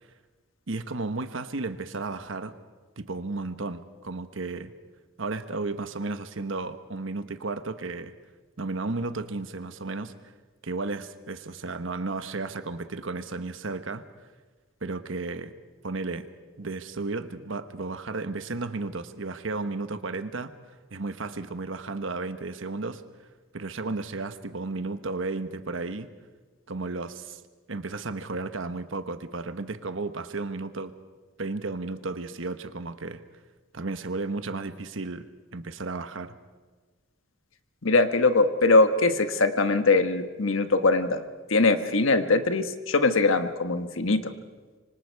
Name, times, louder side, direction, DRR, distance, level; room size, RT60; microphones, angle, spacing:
voice 1, 0.7-2.5 3.0-4.7 5.2-8.1 8.6-10.1 10.6-14.0 14.8-15.5 15.8-16.3 16.6-20.5 20.9-23.0 23.5-26.1 26.7-27.4 27.7-30.9 31.4-33.2 33.7-35.3 35.5-36.3, right 3 dB, 75° right, 10 dB, 1.1 m, -33 dB
voice 2, 37.8-41.2 41.5-44.3, left 3 dB, 80° left, 9 dB, 1.3 m, -22 dB
25.5 x 25.0 x 4.7 m, 1.3 s
head